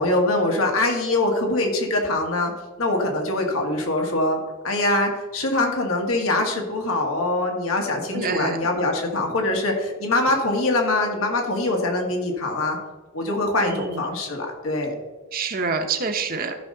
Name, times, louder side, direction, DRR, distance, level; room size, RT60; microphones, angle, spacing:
voice 1, 0.0-2.5 2.8-4.4 4.6-12.8 13.1-14.9, left 2 dB, 85° left, 1 dB, 1.9 m, -23 dB
voice 2, 8.1-8.7 13.7-14.0 15.3-16.5, right 4 dB, 45° right, 6 dB, 0.9 m, -27 dB
14.0 x 5.5 x 3.9 m, 1.3 s
head